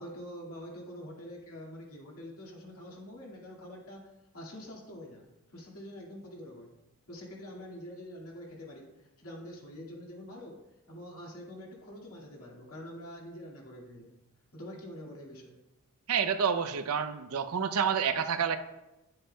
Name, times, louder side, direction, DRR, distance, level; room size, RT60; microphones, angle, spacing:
voice 1, 0.0-6.7 7.1-10.6 10.9-14.1 14.5-15.6, equal, 75° left, -2 dB, 2.0 m, -46 dB
voice 2, 16.1-18.6, right 7 dB, 75° right, 10 dB, 0.6 m, -28 dB
10.0 x 7.6 x 2.2 m, 0.96 s
head